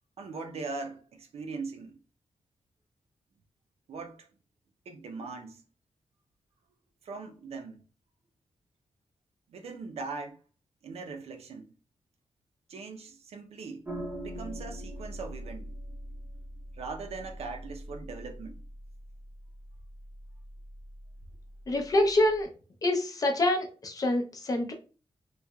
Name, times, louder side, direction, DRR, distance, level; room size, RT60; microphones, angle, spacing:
voice 1, 0.2-2.0 3.9-4.3 4.9-5.6 7.0-7.8 9.5-10.4 10.8-11.7 12.7-13.9 14.2-15.7 16.8-18.6, right 4 dB, 75° right, 0.6 m, -40 dB
sound 1, 13.8-22.4, right 1 dB, 20° right, 0.6 m, -43 dB
voice 2, 21.7-22.5 22.8-24.7, left 1 dB, 35° left, 0.5 m, -26 dB
3.2 x 2.8 x 2.3 m
wide cardioid pair, 170°, 11 cm